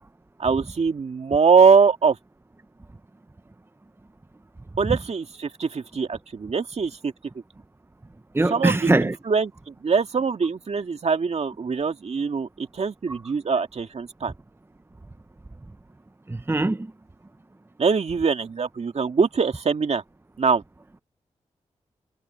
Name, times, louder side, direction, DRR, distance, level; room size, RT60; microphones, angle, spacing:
voice 1, 0.4-2.2 4.8-7.1 8.5-14.3 17.8-20.0 20.4-20.6, right 5 dB, 60° right, 2.1 m, -22 dB
voice 2, 8.3-9.1 16.3-16.9, right 2 dB, 20° right, 0.7 m, -21 dB
cardioid pair, 45°, 12 cm